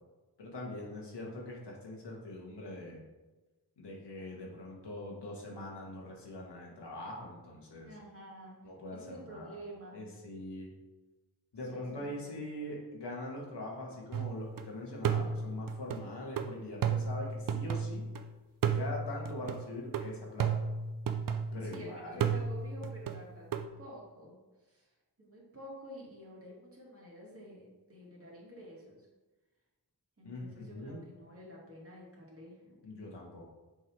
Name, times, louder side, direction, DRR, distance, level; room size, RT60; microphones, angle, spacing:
voice 1, 0.4-3.0 3.8-7.9 8.6-9.5 9.9-10.7 11.5-18.0 18.7-20.6 21.5-22.3 30.2-31.0 32.8-33.4, left 1 dB, 85° left, -2 dB, 1.6 m, -42 dB
voice 2, 7.8-8.6 8.9-10.0 11.7-12.5 21.6-24.4 24.7-24.8 25.2-29.1 30.2-32.8, equal, 35° right, -4 dB, 2.2 m, -49 dB
sound 1, 14.1-14.6 15.0-18.2 18.6-21.8 22.2-23.7, right 6 dB, 55° right, 0.5 m, -33 dB
6.5 x 3.7 x 4.6 m, 1.2 s
wide cardioid pair, 65°, 40 cm